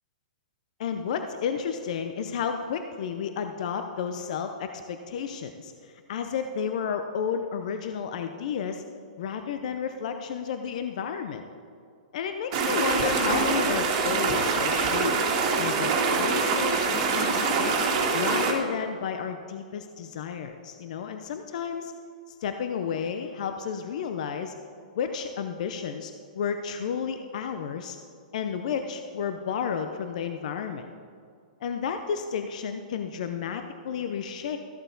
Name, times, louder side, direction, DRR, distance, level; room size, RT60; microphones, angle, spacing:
voice 1, 0.8-8.8 9.2-11.4 12.1-15.1 15.6-17.7 18.1-21.9 22.3-24.5 24.9-28.0 28.3-30.9 31.6-34.6, left 7 dB, 60° left, 7 dB, 0.7 m, -32 dB
sound 1, 12.5-18.5, right 4 dB, 40° right, 1.9 m, -25 dB
14.0 x 8.1 x 4.0 m, 2.2 s
hypercardioid pair, 140°, 4 cm